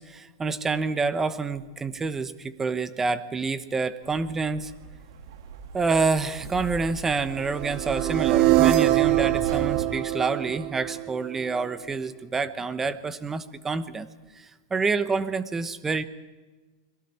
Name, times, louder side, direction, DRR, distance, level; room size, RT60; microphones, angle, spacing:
voice 1, 0.0-4.7 5.7-14.1 14.3-16.0, right 4 dB, 15° right, 12 dB, 1.1 m, -28 dB
sound 1, 4.0-9.9, right 5 dB, 70° right, 2.8 m, -37 dB
sound 2, 7.6-11.6, right 16 dB, 45° right, 0.8 m, -23 dB
30.0 x 22.5 x 4.5 m, 1.2 s
supercardioid pair, 140°, 2 cm